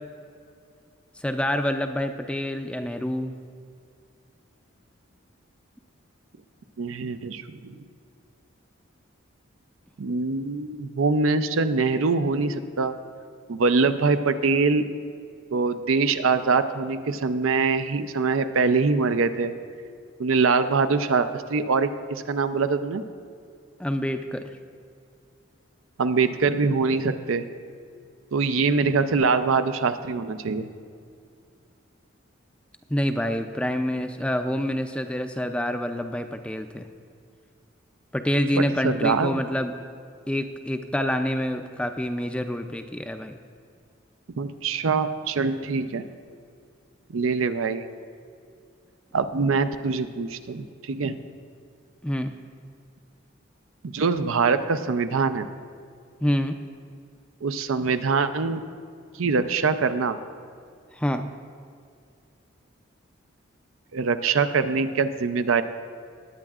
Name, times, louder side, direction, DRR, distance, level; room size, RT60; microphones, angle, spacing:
voice 1, 1.2-3.3 23.8-24.5 32.9-36.9 38.1-39.7 40.3-43.3 52.0-52.3 56.2-56.6 60.9-61.3, equal, 5° left, 7 dB, 0.3 m, -27 dB
voice 2, 6.8-7.8 10.0-13.0 13.5-14.9 15.5-19.5 20.2-23.0 26.0-27.5 28.3-30.7 38.5-39.4 44.4-46.1 47.1-47.8 49.1-51.2 53.8-55.5 57.4-58.6 59.2-60.2 63.9-65.6, right 4 dB, 90° right, 10 dB, 0.5 m, -23 dB
19.0 x 8.8 x 2.4 m, 2.3 s
head